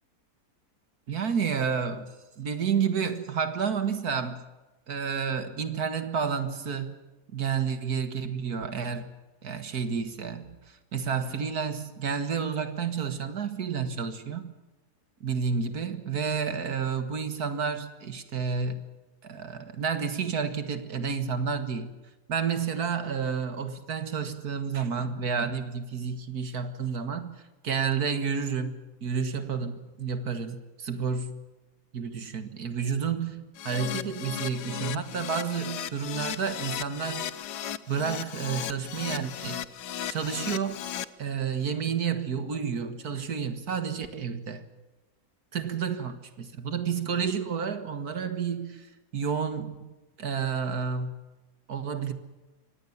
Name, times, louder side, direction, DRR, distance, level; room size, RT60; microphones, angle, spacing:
voice 1, 1.1-4.4 4.9-7.0 7.3-9.1 9.4-14.5 15.2-18.8 19.2-21.9 22.3-31.4 31.9-37.3 37.9-39.6 40.1-40.8 41.2-44.7 45.5-48.9 49.1-51.1 51.7-52.1, right 6 dB, 70° right, 10 dB, 2.2 m, -30 dB
Keyboard (musical), 33.5-41.0, left 10 dB, 85° left, 1.5 m, -36 dB
25.0 x 18.0 x 7.3 m, 1.1 s
omnidirectional pair, 1.7 m